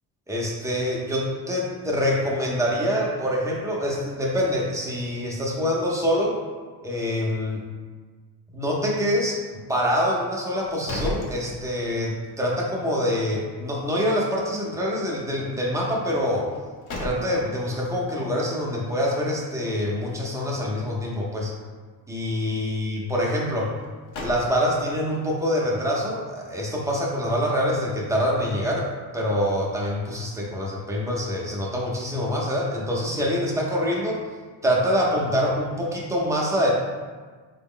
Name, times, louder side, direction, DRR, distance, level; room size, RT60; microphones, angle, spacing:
voice 1, 0.3-6.4 6.8-7.6 8.5-9.4 9.7-16.5 17.0-21.5 22.1-23.7 24.2-28.9 29.1-34.2 34.6-36.7, equal, 5° right, -4 dB, 0.5 m, -25 dB
sound 1, 10.5-12.1 12.5-12.6 16.4-17.7 23.7-25.0, left 1 dB, 50° left, 0.6 m, -35 dB
4.0 x 2.1 x 3.7 m, 1.4 s
cardioid pair, 140°, 43 cm